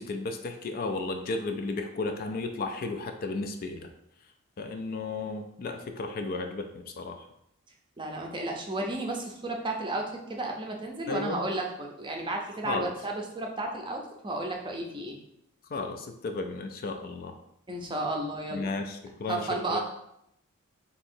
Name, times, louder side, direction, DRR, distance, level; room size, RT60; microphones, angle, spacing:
voice 1, 0.0-3.9 4.6-7.3 11.1-11.4 12.6-12.9 15.7-17.4 18.5-19.8, left 3 dB, 40° left, 6 dB, 0.4 m, -34 dB
voice 2, 8.0-15.2 17.7-18.8 19.3-19.8, right 2 dB, 20° right, 1 dB, 0.6 m, -33 dB
3.6 x 2.9 x 4.3 m, 0.78 s
head